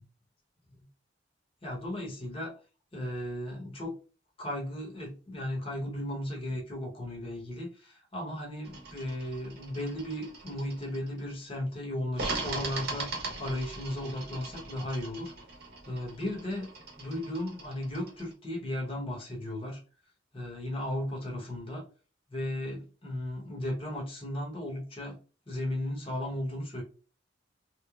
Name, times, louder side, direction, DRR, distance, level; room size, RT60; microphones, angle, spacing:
voice 1, 1.6-2.5 2.9-4.0 4.4-15.3 15.8-16.7 17.0-19.8 20.3-21.8 22.3-25.2 25.5-26.8, left 1 dB, 30° left, -2 dB, 0.9 m, -35 dB
sound 1, 8.6-11.3 12.1-18.3, right 3 dB, 55° right, 0.9 m, -40 dB
3.0 x 2.1 x 2.3 m, 0.35 s
head